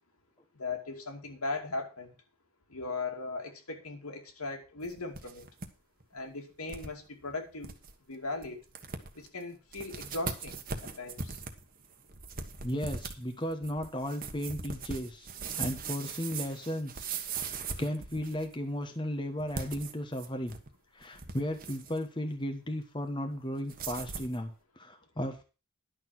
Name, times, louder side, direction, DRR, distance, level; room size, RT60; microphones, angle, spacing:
voice 1, 0.5-2.1 2.7-5.5 6.1-7.7 8.1-8.6 9.1-11.4, left 3 dB, 80° left, 4 dB, 2.5 m, -38 dB
sound 1, 4.8-5.7 6.0-6.1 6.7-6.9 7.3-7.4 7.6-7.9 8.4-8.5 8.8-9.3 9.7-18.5 19.4-20.7 21.0-22.0 23.7-24.4, right 5 dB, 40° right, 1.3 m, -40 dB
voice 2, 12.6-15.3 15.6-17.0 17.3-20.6 20.9-25.4, equal, 20° left, 5 dB, 1.2 m, -35 dB
11.5 x 6.6 x 6.0 m, 0.32 s
head